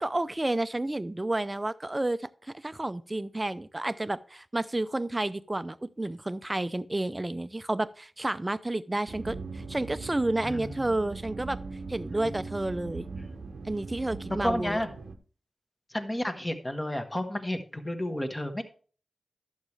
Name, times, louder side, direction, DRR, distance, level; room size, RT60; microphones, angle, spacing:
voice 1, 0.0-11.6 11.9-13.1 13.6-14.8, right 2 dB, 20° right, 14 dB, 0.5 m, -31 dB
sound 1, 9.1-15.2, right 4 dB, 75° right, 0.8 m, -40 dB
voice 2, 10.4-10.9 12.1-12.4 13.2-13.3 14.4-14.9 15.9-18.6, left 1 dB, 20° left, 6 dB, 1.3 m, -32 dB
11.5 x 7.2 x 3.2 m, 0.41 s
cardioid pair, 65°, 0 cm